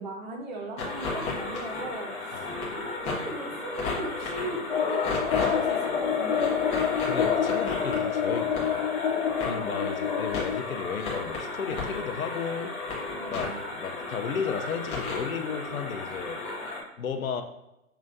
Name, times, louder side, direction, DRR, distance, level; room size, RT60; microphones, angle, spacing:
voice 1, 0.0-2.1 2.8-6.5 9.4-9.7 13.2-13.6, right 2 dB, 30° right, 1 dB, 0.8 m, -38 dB
sound 1, 0.8-16.8, left 3 dB, 15° left, 0.8 m, -34 dB
sound 2, 4.7-10.6, left 8 dB, 40° left, 0.4 m, -27 dB
voice 2, 7.0-8.9 9.5-12.7 13.3-16.4 17.0-17.4, left 6 dB, 75° left, 6 dB, 0.7 m, -33 dB
6.6 x 3.0 x 2.6 m, 0.90 s
figure-of-eight pair, 125°, 43 cm